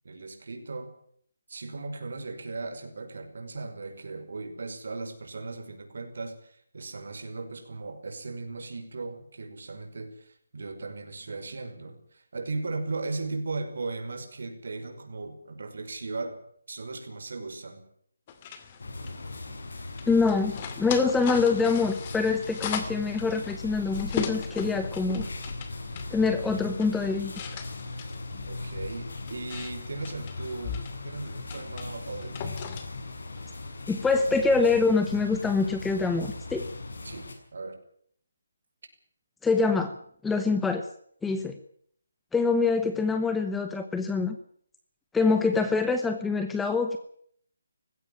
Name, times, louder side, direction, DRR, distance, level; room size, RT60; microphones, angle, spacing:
voice 1, 0.0-0.9 1.5-16.4 16.7-17.8 28.4-32.5 37.0-37.8, right 3 dB, 60° right, 6 dB, 5.6 m, -37 dB
sound 1, 18.3-34.7, left 7 dB, 25° left, 2.4 m, -40 dB
sound 2, 18.8-37.3, left 3 dB, 70° left, 6.7 m, -39 dB
voice 2, 20.1-25.3 26.1-27.3 33.9-36.7 39.4-39.9 40.2-40.8 41.2-41.6 42.3-44.4 45.1-47.0, left 4 dB, 5° left, 8 dB, 0.9 m, -25 dB
19.5 x 16.5 x 8.9 m, 0.62 s
hypercardioid pair, 170°, 0 cm